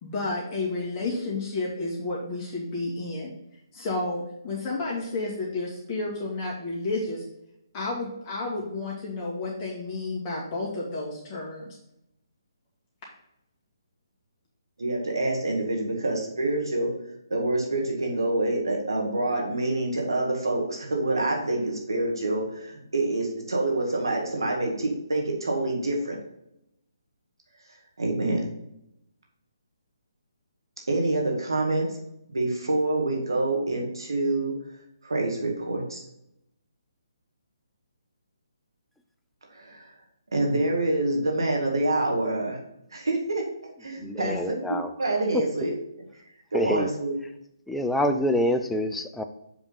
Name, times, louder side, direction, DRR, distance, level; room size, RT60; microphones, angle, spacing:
voice 1, 0.0-3.3 3.7-7.2 7.7-11.7, left 2 dB, 25° left, -5 dB, 1.7 m, -31 dB
voice 2, 14.8-16.9 17.3-26.2 28.0-28.5 30.9-31.9 32.3-34.6 35.0-36.0 39.5-39.9 40.3-42.6 42.9-45.8 46.5-47.1, right 2 dB, 85° right, 0 dB, 2.1 m, -26 dB
voice 3, 44.0-44.9 45.3-45.7 46.5-46.9 47.7-49.2, left 1 dB, 5° left, 6 dB, 0.4 m, -26 dB
6.9 x 3.6 x 5.7 m, 0.82 s
hypercardioid pair, 155°, 2 cm